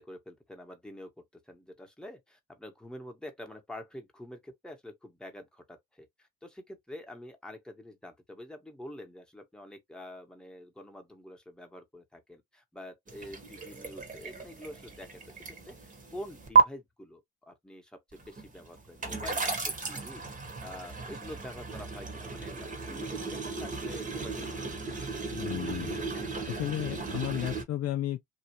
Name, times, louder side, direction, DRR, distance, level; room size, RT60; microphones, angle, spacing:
voice 1, 0.0-25.5, left 1 dB, ahead, 1.2 m, -47 dB
sound 1, 13.1-16.6 18.1-27.6, right 4 dB, 25° right, 1.2 m, -33 dB
voice 2, 25.3-25.9 26.5-28.3, left 12 dB, 50° left, 0.6 m, -33 dB
2.9 x 2.4 x 2.9 m
hypercardioid pair, 65°, 33 cm